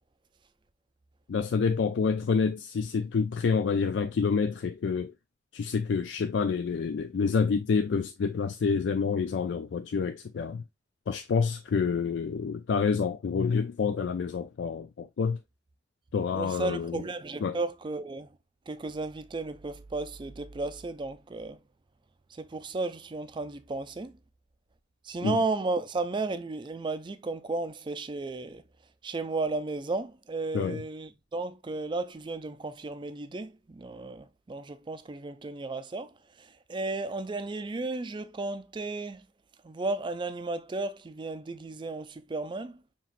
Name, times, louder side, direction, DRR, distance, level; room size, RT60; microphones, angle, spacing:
voice 1, 1.3-5.1 5.5-10.6 11.1-15.4 16.1-17.0 17.4-17.6 25.2-25.4 30.5-30.8, left 5 dB, 75° left, 0.4 m, -28 dB
voice 2, 16.3-18.3 18.7-21.6 22.4-24.1 25.0-28.6 29.0-36.1 36.4-39.2 39.6-42.8, right 3 dB, 25° right, 0.4 m, -34 dB
5.6 x 3.0 x 2.5 m
head